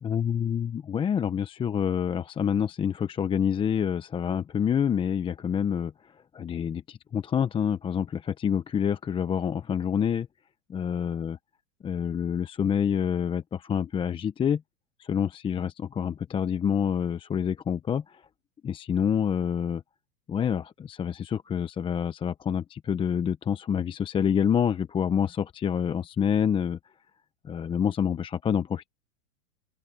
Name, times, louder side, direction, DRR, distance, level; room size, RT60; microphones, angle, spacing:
voice 1, 0.0-5.9 6.3-10.3 10.7-11.4 11.8-14.6 15.0-18.2 18.6-19.8 20.3-26.8 27.4-28.9, left 8 dB, 10° left, 0.7 m, -27 dB
open air
hypercardioid pair, 125°, 42 cm